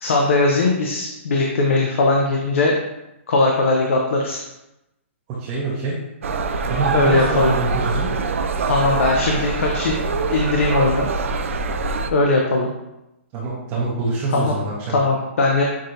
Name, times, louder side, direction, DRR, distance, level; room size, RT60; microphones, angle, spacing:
voice 1, 0.0-2.8 3.3-4.4 6.9-7.5 8.7-11.1 12.1-12.7 14.3-14.5 14.9-15.6, left 2 dB, 75° left, 0 dB, 0.6 m, -19 dB
voice 2, 5.3-6.0 6.7-8.1 13.3-15.0, right 3 dB, 25° right, -5 dB, 0.7 m, -25 dB
sound 1, 6.2-12.1, right 4 dB, 80° right, 0.4 m, -24 dB
6.1 x 2.7 x 2.6 m, 0.92 s
hypercardioid pair, 155°, 7 cm